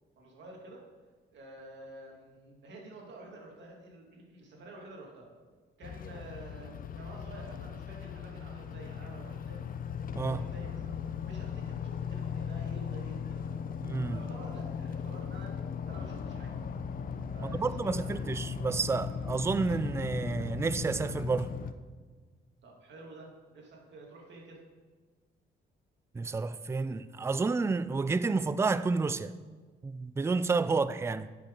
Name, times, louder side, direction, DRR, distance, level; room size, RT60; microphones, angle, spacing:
voice 1, 0.2-0.8 1.3-5.3 5.8-9.7 10.2-10.9 11.2-13.7 14.1-15.6 15.9-16.5 17.3-18.3 22.6-24.6 30.7-30.8, right 2 dB, 65° right, 2.2 m, -49 dB
sound 1, 5.8-21.7, left 7 dB, 45° left, 0.5 m, -38 dB
voice 2, 13.8-14.2 17.4-21.5 26.1-29.3 29.8-31.3, right 4 dB, 15° right, 0.3 m, -30 dB
10.0 x 6.0 x 3.9 m
cardioid pair, 90°, 20 cm